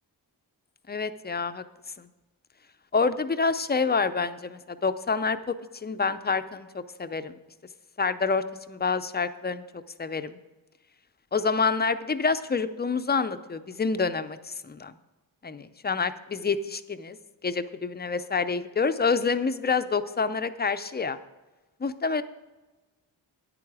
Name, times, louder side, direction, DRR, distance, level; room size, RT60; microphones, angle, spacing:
voice 1, 0.9-1.6 2.0-2.1 2.9-5.5 5.8-7.4 8.0-9.6 10.0-10.4 11.3-14.9 15.4-17.2 17.4-21.2 21.8-22.2, left 4 dB, 25° left, 11 dB, 0.5 m, -27 dB
9.9 x 8.7 x 4.8 m, 1.2 s
wide cardioid pair, 110°, 45 cm